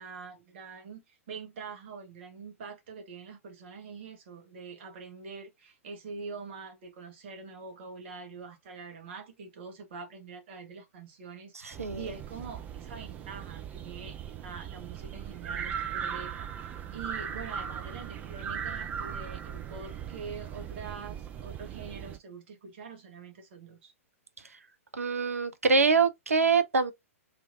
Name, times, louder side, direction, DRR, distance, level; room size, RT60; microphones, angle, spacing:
voice 1, 0.0-23.9, right 5 dB, 50° right, 1.1 m, -44 dB
voice 2, 11.6-12.1 24.9-26.9, right 5 dB, 75° right, 0.5 m, -25 dB
sound 1, 11.7-22.2, right 8 dB, 20° right, 0.4 m, -38 dB
3.1 x 2.5 x 2.5 m
figure-of-eight pair, 110°, 8 cm